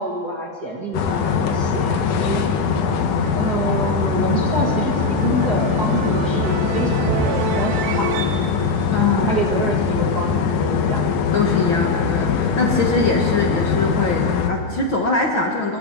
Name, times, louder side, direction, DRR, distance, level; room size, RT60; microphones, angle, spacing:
voice 1, 0.0-2.4 3.4-8.4 9.2-11.1 11.7-11.8, right 2 dB, 35° right, -1 dB, 1.8 m, -27 dB
sound 1, 0.9-14.5, left 6 dB, 70° left, 2.6 m, -21 dB
sound 2, 0.9-10.0, right 10 dB, 90° right, 2.5 m, -31 dB
voice 2, 8.9-9.6 11.3-15.8, left 3 dB, 45° left, 0 dB, 1.8 m, -22 dB
26.5 x 22.0 x 4.6 m, 2.1 s
omnidirectional pair, 3.9 m